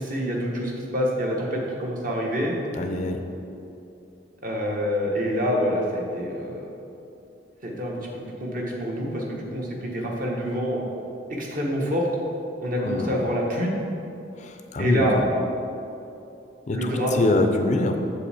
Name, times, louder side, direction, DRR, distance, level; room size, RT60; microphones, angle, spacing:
voice 1, 0.0-2.5 4.4-6.7 7.6-8.0 8.4-10.8 11.3-12.1 12.6-13.7 14.8-15.1 16.7-17.2, equal, 50° right, -2 dB, 1.1 m, -26 dB
voice 2, 2.7-3.2 12.8-13.1 14.4-15.3 16.7-18.0, left 2 dB, 40° left, 5 dB, 0.4 m, -24 dB
7.3 x 5.4 x 4.2 m, 2.8 s
head